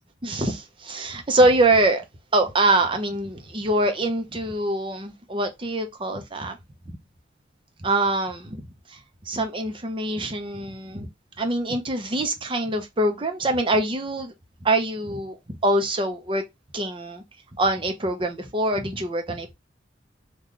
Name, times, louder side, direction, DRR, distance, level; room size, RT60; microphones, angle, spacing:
voice 1, 0.2-2.0 2.3-6.6 7.8-8.6 8.9-9.0 9.3-11.1 11.4-14.3 14.6-15.4 15.6-16.4 16.7-17.2 17.6-19.5, right 2 dB, 30° right, 0.6 m, -24 dB
3.7 x 2.3 x 3.1 m
head